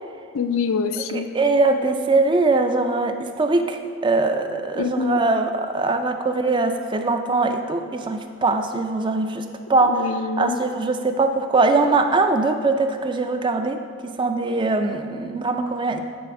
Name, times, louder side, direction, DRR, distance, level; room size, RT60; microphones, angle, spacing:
voice 1, 0.3-1.3 4.7-5.2 9.8-10.6, left 5 dB, 75° left, 9 dB, 0.4 m, -25 dB
voice 2, 1.1-9.4 9.7-10.1 10.4-16.0, right 3 dB, 20° right, 6 dB, 0.3 m, -21 dB
8.5 x 4.0 x 5.9 m, 2.3 s
head